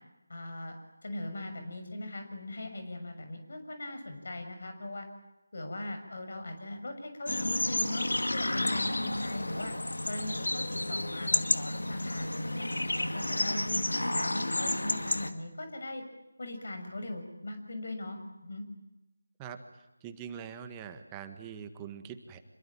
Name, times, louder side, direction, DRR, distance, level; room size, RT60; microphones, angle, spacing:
voice 1, 0.3-5.1 5.5-9.7 10.1-12.6 13.0-16.0 16.4-18.6, left 1 dB, 55° left, 6 dB, 6.7 m, -40 dB
sound 1, 7.3-15.3, left 1 dB, 80° left, 2.3 m, -31 dB
voice 2, 20.0-22.4, right 8 dB, 15° right, 7 dB, 1.6 m, -43 dB
27.5 x 23.0 x 9.0 m, 0.96 s
figure-of-eight pair, 165°, 0 cm